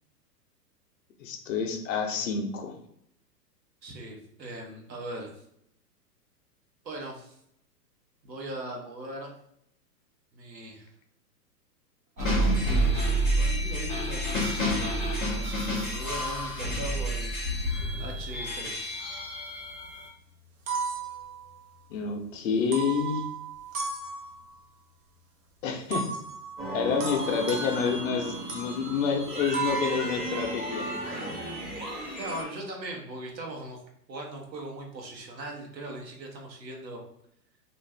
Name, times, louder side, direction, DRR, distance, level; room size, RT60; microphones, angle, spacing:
voice 1, 1.2-2.7 21.9-23.2 25.6-26.1 26.7-30.9, left 6 dB, 50° left, 3 dB, 0.6 m, -28 dB
voice 2, 3.8-5.3 6.8-7.4 8.2-9.3 10.3-10.9 12.2-12.6 13.4-17.3 18.0-19.0 32.2-33.8 34.1-37.0, right 1 dB, 90° right, 0 dB, 1.1 m, -40 dB
sound 1, 12.2-20.1, right 1 dB, ahead, 0.3 m, -28 dB
sound 2, 15.0-15.3 15.8-17.3 18.2-19.3 19.7-19.8 20.4-22.0 22.6-24.6 25.9-31.1, right 4 dB, 55° right, 0.9 m, -37 dB
sound 3, 26.6-32.4, right 1 dB, 20° right, 1.1 m, -35 dB
2.5 x 2.4 x 3.2 m, 0.73 s
hypercardioid pair, 120°, 49 cm